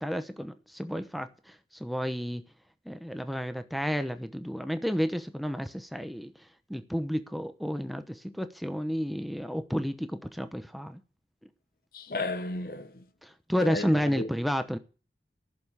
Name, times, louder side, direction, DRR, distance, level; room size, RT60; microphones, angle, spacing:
voice 1, 0.0-2.4 2.9-11.0 13.2-14.8, equal, ahead, 0.9 m, -31 dB
voice 2, 11.9-13.0 13.6-13.9 14.2-14.3, left 2 dB, 55° left, 0.9 m, -33 dB
14.5 x 7.0 x 8.4 m
head